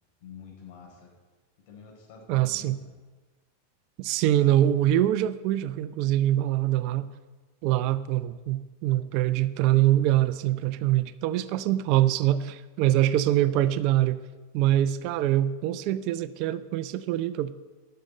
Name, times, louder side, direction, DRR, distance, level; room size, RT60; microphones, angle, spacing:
voice 1, 0.2-1.1 1.6-2.9 14.6-14.9, left 6 dB, 60° left, 0 dB, 4.4 m, -48 dB
voice 2, 2.3-2.8 4.0-7.1 7.6-14.2 14.5-17.5, right 13 dB, 50° right, 15 dB, 0.6 m, -24 dB
11.5 x 6.7 x 8.8 m, 1.3 s
hypercardioid pair, 110°, 0 cm